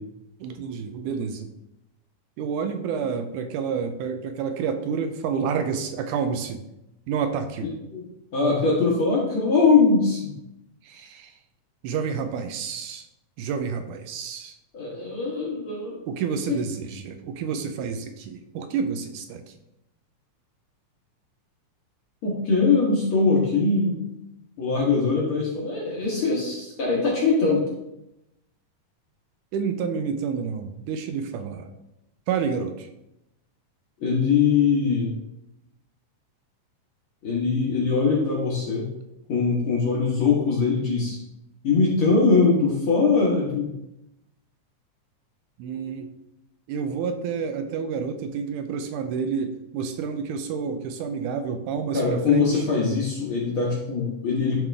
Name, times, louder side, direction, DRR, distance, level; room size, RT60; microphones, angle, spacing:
voice 1, 0.4-1.5 2.4-6.6 7.1-7.7 10.8-11.3 11.8-13.1 13.4-14.6 16.1-19.4 29.5-31.7 32.3-32.9 45.6-46.1 46.7-52.6, right 6 dB, 80° right, 6 dB, 2.0 m, -29 dB
voice 2, 8.3-10.2 14.7-16.0 22.2-24.0 24.6-27.6 34.0-35.1 37.2-38.9 39.3-41.2 41.6-43.7 51.9-54.6, left 4 dB, 55° left, -4 dB, 1.6 m, -22 dB
10.5 x 3.7 x 3.4 m, 0.86 s
omnidirectional pair, 3.7 m